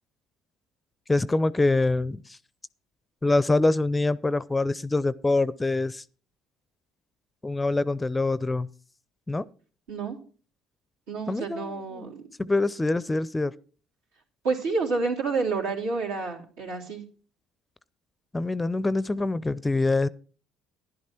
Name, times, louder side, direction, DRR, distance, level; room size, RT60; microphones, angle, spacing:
voice 1, 1.1-2.2 3.2-6.0 7.4-8.7 9.3-9.4 11.3-12.0 12.4-13.5 18.3-20.1, left 2 dB, 15° left, 0.5 m, -25 dB
voice 2, 11.1-12.2 14.4-17.0, right 4 dB, 75° right, 3.3 m, -29 dB
12.0 x 11.0 x 4.3 m
hypercardioid pair, 60°, 0 cm